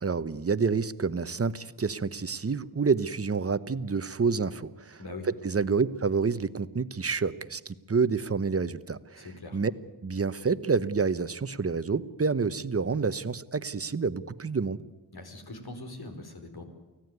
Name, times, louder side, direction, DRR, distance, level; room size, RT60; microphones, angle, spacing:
voice 1, 0.0-9.7 10.0-14.8, right 5 dB, 35° right, 14 dB, 1.0 m, -28 dB
voice 2, 9.2-9.6 15.1-16.6, left 2 dB, 65° left, 5 dB, 4.7 m, -42 dB
24.5 x 16.5 x 9.4 m, 1.2 s
wide cardioid pair, 80°, 40 cm